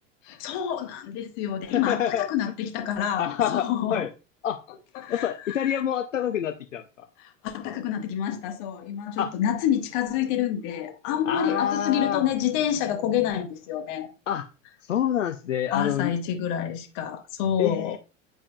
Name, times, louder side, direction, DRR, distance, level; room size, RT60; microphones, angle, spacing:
voice 1, 0.2-4.0 4.7-5.8 7.2-14.1 15.7-18.0, left 9 dB, 45° left, 1.2 m, -28 dB
voice 2, 1.7-2.3 3.2-4.1 4.4-4.6 5.1-6.8 9.2-9.3 11.3-12.3 14.3-14.5 14.8-16.1 17.6-18.0, left 10 dB, 75° left, 0.6 m, -27 dB
9.1 x 4.8 x 2.3 m
figure-of-eight pair, 85°, 38 cm